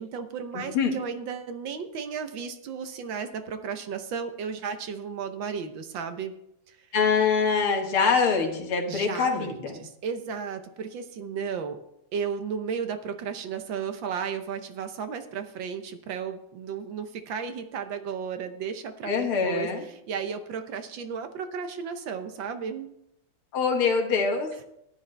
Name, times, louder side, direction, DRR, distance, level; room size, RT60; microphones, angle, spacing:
voice 1, 0.0-6.3 6.7-6.8 8.9-11.8 12.1-23.0, right 6 dB, 70° right, 8 dB, 1.5 m, -34 dB
voice 2, 0.5-0.9 6.9-9.8 19.0-19.8 23.5-24.6, left 5 dB, 85° left, 2 dB, 2.4 m, -24 dB
14.0 x 10.0 x 3.3 m, 0.78 s
omnidirectional pair, 2.3 m